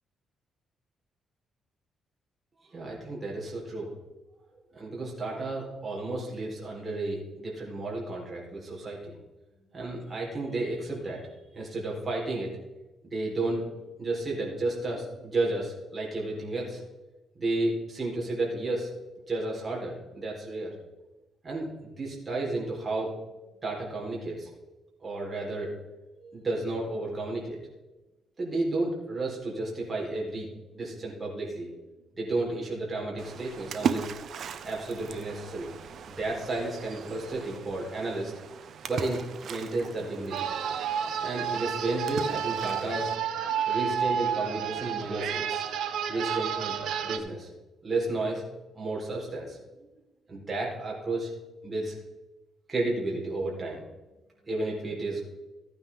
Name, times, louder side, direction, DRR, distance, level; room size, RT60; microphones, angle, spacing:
voice 1, 2.7-3.9 4.7-9.1 9.7-12.5 13.1-16.8 17.4-18.9 19.3-20.7 21.4-23.2 23.6-24.5 25.0-25.7 26.2-27.6 28.4-31.7 32.2-34.1 34.6-35.7 36.0-38.3 38.9-39.2 39.5-40.5 41.2-43.1 43.6-45.6 46.1-46.8 47.0-47.5 47.8-49.6 50.3-51.3 51.6-51.9 52.7-53.8 54.5-55.2, right 2 dB, 25° right, -3 dB, 4.2 m, -32 dB
Splash splatter, 33.2-43.1, right 7 dB, 60° right, 0.9 m, -38 dB
sound 1, 40.3-47.2, right 8 dB, 75° right, 1.1 m, -31 dB
15.0 x 9.3 x 3.7 m, 1.1 s
cardioid pair, 90°, 0 cm